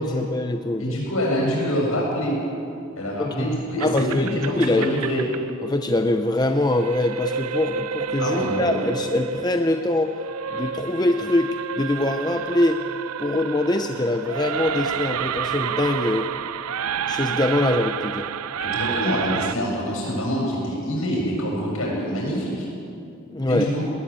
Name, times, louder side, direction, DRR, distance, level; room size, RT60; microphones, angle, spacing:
voice 1, 0.0-1.0 3.2-3.5 3.8-4.9 5.6-10.2 10.5-12.8 13.2-16.3 17.1-18.3 23.3-23.7, left 1 dB, 20° left, 6 dB, 0.6 m, -23 dB
voice 2, 0.8-2.4 3.0-5.3 8.2-8.7 18.6-22.7 23.5-23.8, equal, 70° left, -2 dB, 7.7 m, -25 dB
sound 1, 3.8-19.5, right 7 dB, 90° right, 0.6 m, -30 dB
19.5 x 19.0 x 8.8 m, 2.6 s
head